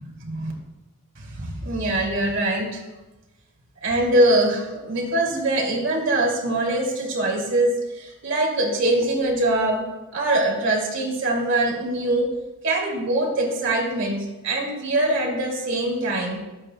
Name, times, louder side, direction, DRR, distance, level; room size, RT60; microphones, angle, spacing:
voice 1, 0.0-0.5 1.2-2.9 3.8-9.8 10.1-12.3 12.6-16.4, right 1 dB, 60° right, -1 dB, 2.5 m, -23 dB
22.5 x 8.8 x 2.2 m, 1.1 s
head